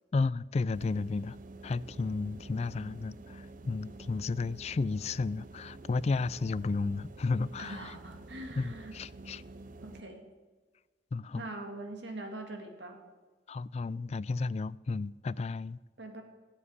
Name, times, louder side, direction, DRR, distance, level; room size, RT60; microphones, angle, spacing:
voice 1, 0.1-1.4 1.6-7.9 8.6-9.4 11.1-11.4 13.5-15.8, left 3 dB, 40° left, 0.3 m, -33 dB
sound 1, 0.7-10.0, right 2 dB, 50° right, 0.6 m, -49 dB
voice 2, 7.6-9.0 9.8-10.2 11.3-13.0 16.0-16.2, right 2 dB, 85° right, 2.4 m, -43 dB
15.5 x 7.3 x 9.8 m
head